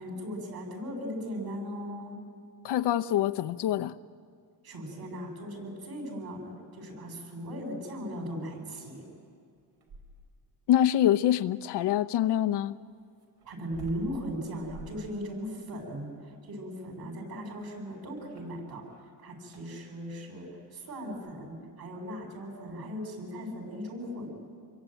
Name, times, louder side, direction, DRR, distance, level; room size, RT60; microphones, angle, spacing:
voice 1, 0.0-2.2 4.6-9.0 13.4-18.9 19.2-24.3, equal, 55° right, 7.6 m, -38 dB
voice 2, 2.6-3.9 10.7-12.7, left 11 dB, 70° left, 0.8 m, -25 dB
sound 1, 9.5-10.4 12.2-19.1 19.4-19.8 21.1-21.4, right 1 dB, 85° right, 5.9 m, -51 dB
27.0 x 22.5 x 9.1 m
cardioid pair, 130°, 43 cm